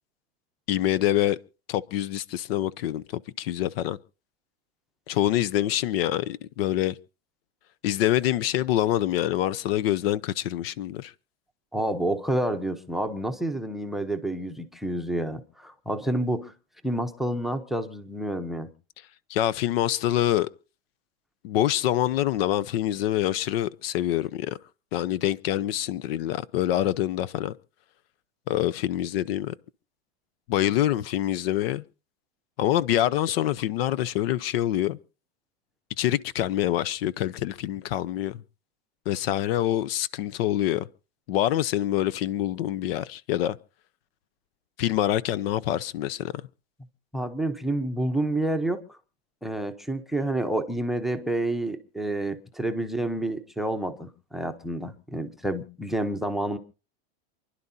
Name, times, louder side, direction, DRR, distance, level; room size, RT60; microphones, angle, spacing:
voice 1, 0.7-1.4 1.7-3.0 3.4-4.0 5.1-6.9 7.8-11.1 19.3-20.5 21.4-24.6 24.9-27.5 28.5-29.5 30.5-31.8 32.6-35.0 36.0-38.4 39.1-40.9 41.3-43.6 44.8-46.3, left 13 dB, 60° left, 0.8 m, -25 dB
voice 2, 11.7-16.5 16.8-18.7 47.1-49.0 49.4-56.6, right 1 dB, ahead, 0.8 m, -29 dB
28.0 x 11.0 x 2.8 m
supercardioid pair, 155°, 33 cm